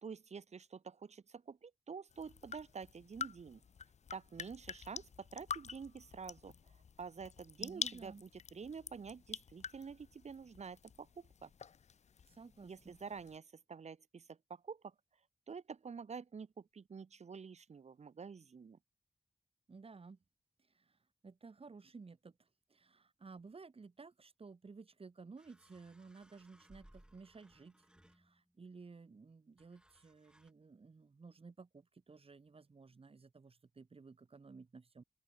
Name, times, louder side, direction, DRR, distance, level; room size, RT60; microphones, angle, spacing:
voice 1, 0.0-3.6 4.1-6.5 7.0-11.5 12.6-14.9 15.5-18.8, right 5 dB, 75° right, 4.2 m, -48 dB
sound 1, 2.1-13.4, left 6 dB, 75° left, 1.0 m, -48 dB
voice 2, 7.6-8.2 12.3-13.0 19.7-20.2 20.7-21.0 21.2-27.8 28.1-35.0, right 4 dB, 55° right, 7.7 m, -55 dB
sound 2, 25.4-28.6 29.6-30.5, right 1 dB, 5° right, 7.0 m, -65 dB
open air
cardioid pair, 65°, 12 cm